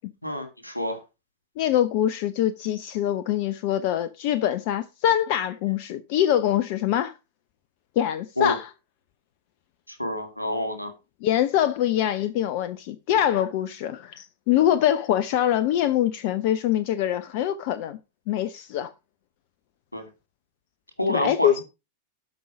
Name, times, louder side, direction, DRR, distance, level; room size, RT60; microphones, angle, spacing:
voice 1, 0.2-1.0 8.4-8.6 9.9-10.9 19.9-20.1 21.0-21.6, left 1 dB, 85° left, 2.3 m, -27 dB
voice 2, 1.6-7.1 8.0-8.7 11.2-18.0 18.3-18.9 21.1-21.6, left 11 dB, 50° left, 0.8 m, -24 dB
12.5 x 5.6 x 4.9 m
figure-of-eight pair, 90°, 0 cm